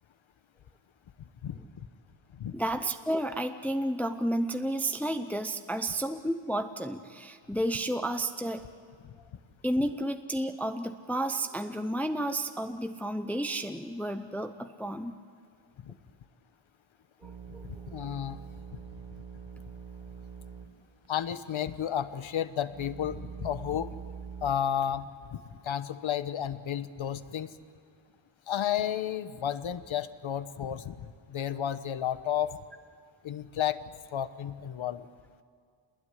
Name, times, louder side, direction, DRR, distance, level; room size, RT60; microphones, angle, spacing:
voice 1, 2.5-8.6 9.6-15.2 17.2-17.7, right 1 dB, 5° left, 8 dB, 0.6 m, -31 dB
sound 1, 17.2-20.8 21.0-21.1 21.8-24.5, right 6 dB, 60° right, 1.5 m, -44 dB
voice 2, 17.6-18.4 18.7-18.8 21.1-23.9 24.4-27.5 28.5-32.6 33.2-33.8 34.1-35.1, left 9 dB, 65° left, 13 dB, 1.2 m, -32 dB
27.5 x 20.5 x 10.0 m, 2.2 s
wide cardioid pair, 170°, 50 cm